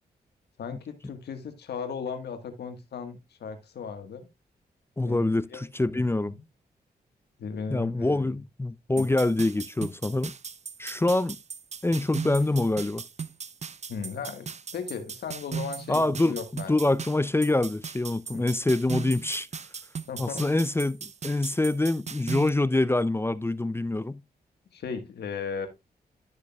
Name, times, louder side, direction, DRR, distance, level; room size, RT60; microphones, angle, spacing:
voice 1, 0.6-4.3 5.0-5.6 5.9-6.4 7.4-8.4 9.0-9.1 13.9-16.9 18.3-18.4 20.1-20.5 24.7-25.7, left 6 dB, 85° left, 1.6 m, -37 dB
voice 2, 5.0-6.3 7.7-10.3 10.8-11.4 11.8-13.0 15.9-16.4 16.7-19.5 20.2-21.0 21.2-24.2, left 2 dB, 15° left, 0.5 m, -25 dB
sound 1, 9.0-22.5, right 6 dB, 40° right, 0.6 m, -38 dB
12.0 x 6.6 x 2.3 m
cardioid pair, 55°, 17 cm